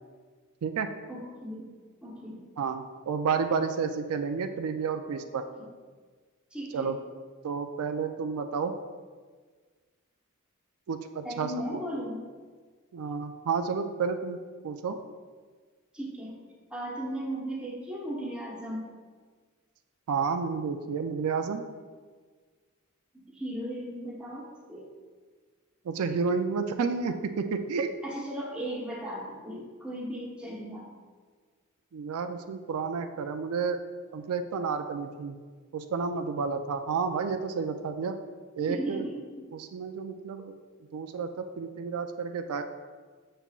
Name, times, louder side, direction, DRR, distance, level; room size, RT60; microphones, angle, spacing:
voice 1, 1.1-1.7 2.0-2.4 5.5-5.7 6.5-7.0 11.2-12.2 15.9-16.3 16.7-18.9 23.1-24.9 28.0-30.9 38.6-39.2, right 1 dB, 5° right, -4 dB, 1.0 m, -36 dB
voice 2, 2.6-5.4 6.7-7.0 7.4-8.7 10.9-11.8 12.9-14.4 14.6-15.0 20.1-21.6 25.9-28.0 31.9-33.8 34.1-35.4 35.7-38.2 38.6-39.0 39.5-40.5 40.9-42.6, right 5 dB, 85° right, 7 dB, 0.4 m, -31 dB
7.1 x 5.5 x 2.4 m, 1.5 s
head